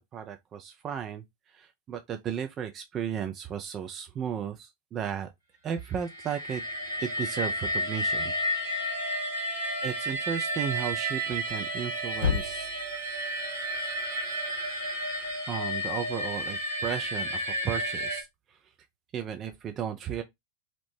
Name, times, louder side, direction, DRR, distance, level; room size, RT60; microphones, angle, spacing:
voice 1, 0.0-5.3 5.6-6.6 7.0-8.3 9.8-12.7 15.5-18.6 19.1-20.2, right 8 dB, 30° right, 0.3 m, -34 dB
sound 1, 6.0-18.2, equal, 85° right, 1.0 m, -32 dB
Thump thud, 11.3-15.4, left 7 dB, 65° left, 0.7 m, -36 dB
2.7 x 2.0 x 3.1 m
figure-of-eight pair, 90°, 0 cm